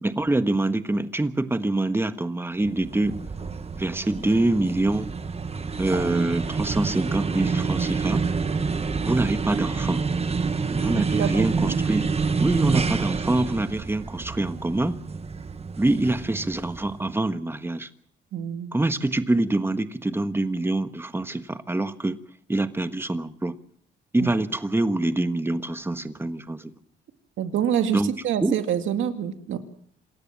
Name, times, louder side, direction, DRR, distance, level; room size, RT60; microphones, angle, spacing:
voice 1, 0.0-3.2 3.8-5.1 5.8-8.2 9.1-10.0 10.8-12.1 12.4-15.0 15.8-17.9 18.7-22.2 22.5-23.6 24.1-26.7 27.9-28.1 28.4-28.6, right 2 dB, 10° right, 11 dB, 1.4 m, -25 dB
sound 1, 2.6-17.1, right 5 dB, 30° right, 1.5 m, -28 dB
voice 2, 10.9-11.7 18.3-18.8 24.2-24.3 27.4-29.6, right 9 dB, 75° right, 8 dB, 2.3 m, -27 dB
27.0 x 13.5 x 7.5 m, 0.64 s
cardioid pair, 90°, 20 cm